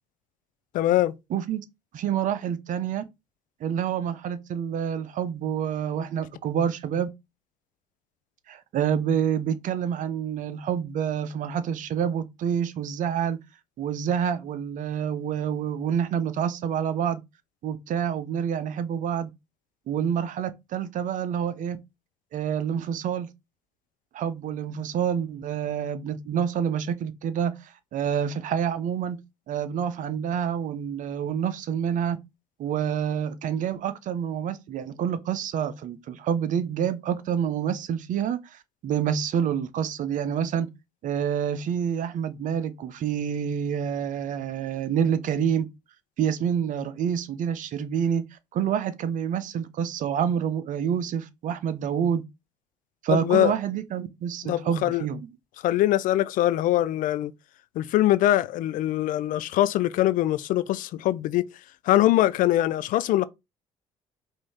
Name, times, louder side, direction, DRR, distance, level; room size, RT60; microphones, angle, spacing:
voice 1, 0.7-1.1 53.1-53.5 54.4-55.1 55.6-57.3 57.8-61.5 61.8-63.3, left 14 dB, 60° left, 0.4 m, -22 dB
voice 2, 1.9-3.0 3.6-7.1 8.5-13.4 13.8-17.2 17.6-19.3 19.9-21.8 22.3-23.3 24.1-29.2 29.5-32.2 32.6-40.7 41.0-45.7 46.2-48.3 48.5-52.2 53.0-55.3, right 8 dB, 55° right, 0.7 m, -27 dB
5.1 x 2.7 x 3.5 m
hypercardioid pair, 55°, 16 cm